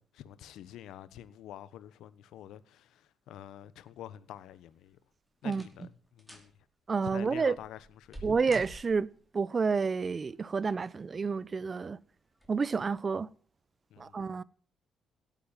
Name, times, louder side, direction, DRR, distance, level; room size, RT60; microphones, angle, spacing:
voice 1, 0.0-5.0 5.4-6.5 7.1-8.2 13.9-14.2, left 11 dB, 85° left, 1.2 m, -47 dB
sound 1, 4.5-4.9 5.4-5.9 6.2-6.5 7.1-9.3 10.5-11.1 11.5-11.6 12.3-12.6 12.9-13.0, right 1 dB, ahead, 5.2 m, -50 dB
voice 2, 6.9-7.6 8.2-9.1 9.3-12.0 12.5-13.3 14.0-14.4, right 5 dB, 35° right, 0.9 m, -29 dB
17.0 x 9.3 x 9.0 m
cardioid pair, 90°, 0 cm